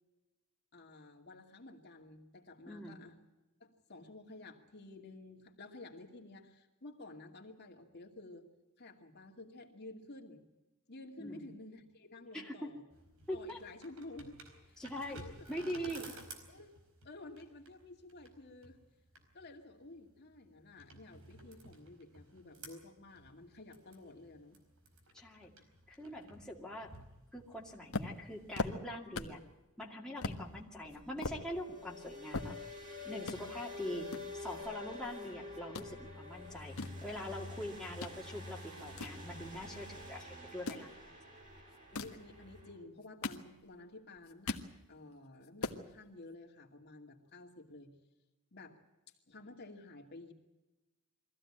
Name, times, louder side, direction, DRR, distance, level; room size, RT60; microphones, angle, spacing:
voice 1, 0.7-3.1 3.6-8.5 8.8-10.4 10.9-12.8 13.3-16.7 17.0-18.8 19.3-24.6 33.4-33.6 41.9-44.6 44.9-47.9 48.5-48.8 49.3-50.3, left 2 dB, 50° left, 2 dB, 2.4 m, -52 dB
voice 2, 2.7-3.0 11.2-11.5 12.3-12.7 13.3-13.6 14.8-15.2 15.5-16.1 25.1-25.5 25.9-26.9 27.3-29.4 29.8-32.6 33.0-36.8 37.0-40.9, equal, 5° left, -3 dB, 2.4 m, -43 dB
sound 1, 12.9-28.6, right 2 dB, 75° right, 4.5 m, -56 dB
sound 2, 27.9-29.5 29.8-29.9 30.2-30.4 30.9-32.9 33.2-33.4 34.1-35.3 35.5-35.9 36.5-38.2 38.6-39.9 40.5-40.9 41.7-42.2 42.9-43.8 44.2-44.7 45.1-45.2 45.4-45.8, left 3 dB, 70° left, 1.5 m, -40 dB
sound 3, 30.3-42.7, left 2 dB, 35° right, 6.3 m, -48 dB
23.0 x 15.5 x 8.8 m, 1.0 s
head